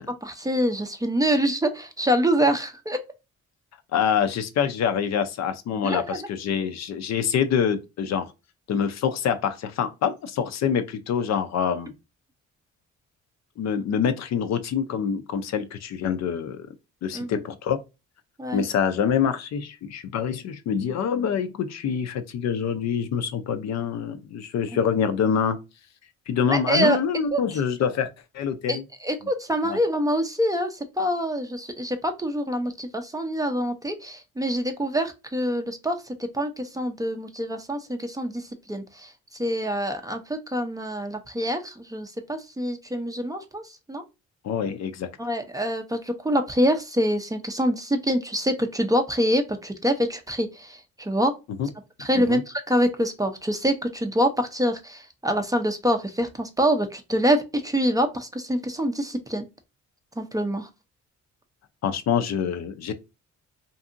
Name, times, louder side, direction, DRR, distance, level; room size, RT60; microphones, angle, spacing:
voice 1, 0.0-3.0 5.8-6.2 17.1-17.3 18.4-18.6 26.5-27.0 27.3-27.4 28.7-44.0 45.2-51.3 52.0-59.5 60.2-60.7, equal, 10° right, 0.4 m, -25 dB
voice 2, 3.9-8.3 8.7-11.9 13.6-16.7 17.0-17.8 18.5-25.6 26.3-28.1 28.3-28.8 29.6-29.8 44.4-45.1 51.6-51.7 52.2-52.4 61.8-62.9, left 7 dB, 60° left, 0.5 m, -25 dB
2.7 x 2.6 x 2.4 m
cardioid pair, 90°, 30 cm